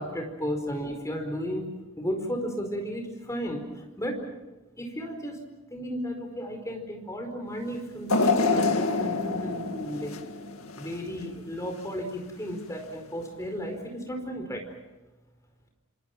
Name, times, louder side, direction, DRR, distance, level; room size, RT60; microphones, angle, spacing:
voice 1, 0.0-3.6 4.0-4.2 4.8-5.4 5.7-10.1 10.7-14.6, equal, 15° left, 4 dB, 4.8 m, -34 dB
sound 1, 8.1-11.2 11.7-11.8 12.8-12.9, left 3 dB, 75° left, 2.1 m, -26 dB
28.0 x 27.5 x 6.0 m, 1.0 s
head